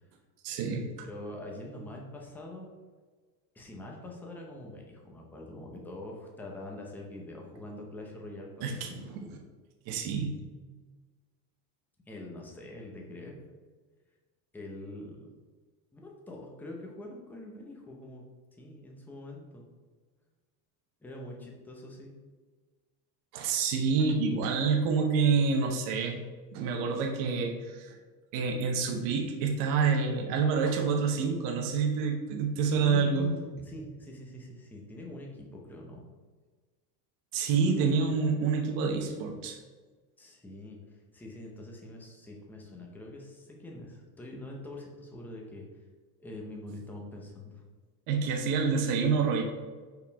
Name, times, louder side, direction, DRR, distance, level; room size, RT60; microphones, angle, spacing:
voice 1, 0.4-0.9 8.6-9.3 9.9-10.3 23.3-26.2 26.5-28.0 28.3-33.3 37.3-39.6 48.1-49.4, right 5 dB, 45° right, 2 dB, 1.0 m, -27 dB
voice 2, 1.0-2.7 3.5-9.4 12.1-13.3 14.5-15.3 15.9-18.2 18.6-19.6 21.0-22.1 32.8-36.0 40.2-40.8 41.1-45.6 46.2-47.6, left 2 dB, 5° left, -1 dB, 0.6 m, -44 dB
5.4 x 4.9 x 4.6 m, 1.4 s
cardioid pair, 170°, 46 cm